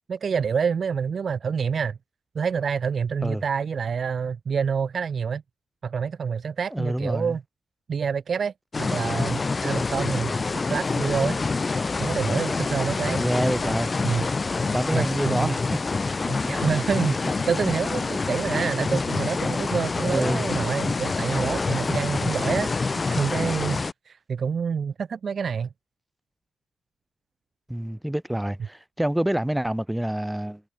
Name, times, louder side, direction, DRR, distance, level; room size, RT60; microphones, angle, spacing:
voice 1, 0.1-2.0 2.4-5.4 5.8-7.4 7.9-10.3 10.7-11.4 12.0-13.2 14.0-14.3 14.9-15.5 16.2-25.7, right 6 dB, 45° right, 1.8 m, -27 dB
voice 2, 6.7-7.4 13.2-13.9 14.7-15.8 16.4-16.6 18.9-19.0 20.1-20.5 27.7-30.6, right 1 dB, 5° right, 4.6 m, -27 dB
sound 1, 8.7-23.9, left 4 dB, 25° left, 1.0 m, -26 dB
wide cardioid pair, 140°, 0 cm